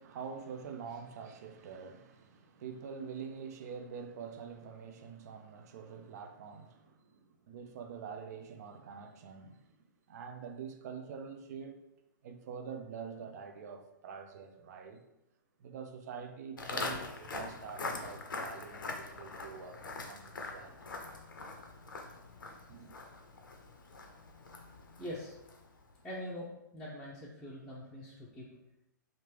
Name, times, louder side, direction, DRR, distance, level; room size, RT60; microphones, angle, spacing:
voice 1, 0.0-9.7 10.1-11.8 12.2-15.0 15.6-21.0 21.4-21.5 22.7-22.9, right 6 dB, 55° right, 0.5 m, -46 dB
Walk footsteps, 16.6-25.8, left 3 dB, 85° left, 0.6 m, -43 dB
voice 2, 25.0-25.3 26.0-28.5, equal, 5° left, 0.5 m, -43 dB
3.1 x 2.5 x 3.3 m
hypercardioid pair, 125°, 11 cm